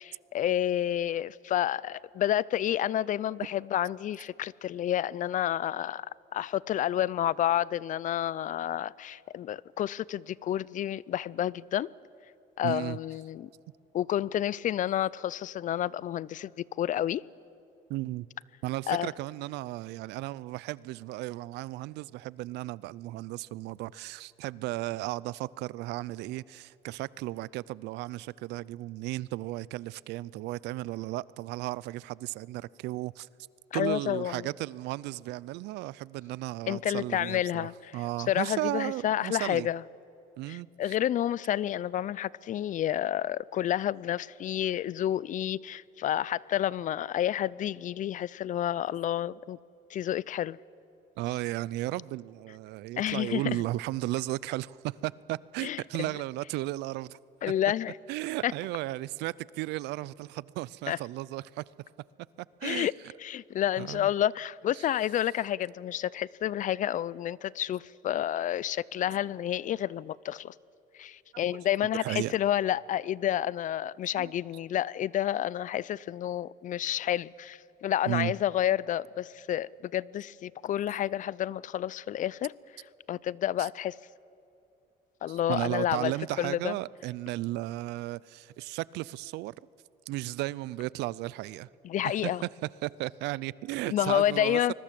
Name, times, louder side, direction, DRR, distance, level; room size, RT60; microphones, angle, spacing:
voice 1, 0.0-6.1 6.3-11.9 12.6-13.5 13.9-16.5 16.8-17.2 18.9-19.1 33.7-34.5 36.7-38.0 38.3-39.8 40.5-49.6 49.9-50.6 53.0-53.6 55.6-56.1 57.4-57.9 58.4-58.5 60.9-61.0 62.6-62.9 63.2-70.5 71.0-82.5 83.1-84.0 85.2-86.1 86.4-86.7 91.8-92.4 93.9-94.7, left 11 dB, 50° left, 0.5 m, -30 dB
voice 2, 12.6-13.0 17.9-18.3 18.6-33.3 33.7-39.7 40.4-41.0 51.2-57.2 58.1-61.6 62.6-62.9 63.8-64.1 64.7-64.9 71.5-71.6 72.0-72.4 74.1-74.3 78.1-78.3 83.6-83.7 85.3-89.5 90.1-91.7 92.0-92.3 92.6-94.7, right 17 dB, 85° right, 0.5 m, -35 dB
25.0 x 21.5 x 7.6 m
cardioid pair, 110°, 17 cm